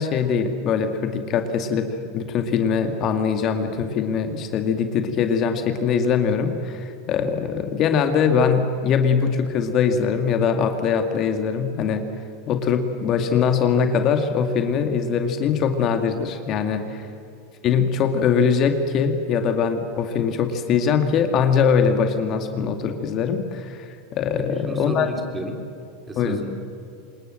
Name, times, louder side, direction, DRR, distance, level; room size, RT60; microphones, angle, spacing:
voice 1, 0.0-1.9 2.1-12.1 12.5-17.1 17.6-25.1 26.2-26.4, left 6 dB, 45° left, 6 dB, 2.2 m, -22 dB
voice 2, 24.4-25.6 26.1-26.5, right 1 dB, 20° right, 4 dB, 3.7 m, -32 dB
26.0 x 21.0 x 7.6 m, 2.8 s
supercardioid pair, 115°, 0 cm